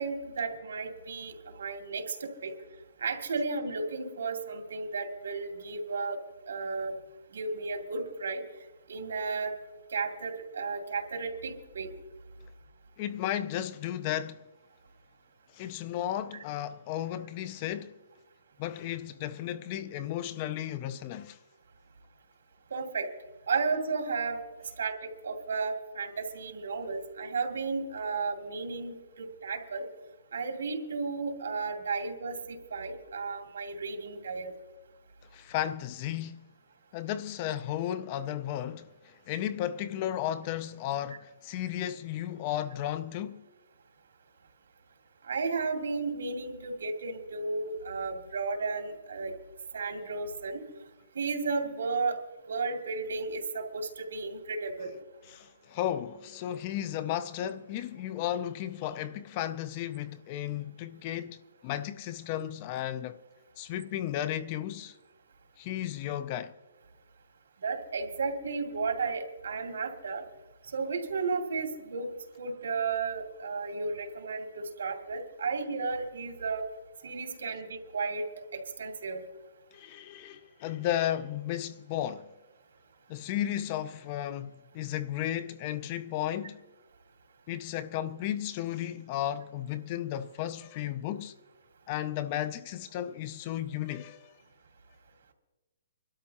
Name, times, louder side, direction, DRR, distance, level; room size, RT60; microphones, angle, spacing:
voice 1, 0.0-2.5 3.0-6.2 6.5-7.0 7.3-8.4 8.9-9.5 9.9-11.9 22.7-23.1 23.5-24.4 24.8-29.9 30.3-34.5 45.2-49.3 49.7-50.6 51.1-52.2 52.5-54.9 67.6-70.2 70.7-72.1 72.4-76.6 77.0-78.3 78.5-79.2, right 4 dB, 80° right, 2.4 m, -33 dB
voice 2, 13.0-14.4 15.5-17.9 18.6-21.4 35.3-36.5 36.9-43.4 55.3-63.2 63.6-65.0 65.6-66.5 79.7-82.3 83.1-86.6 87.5-91.3 91.9-94.3, left 11 dB, 25° left, 0.3 m, -34 dB
25.5 x 12.5 x 2.8 m
hypercardioid pair, 175°, 0 cm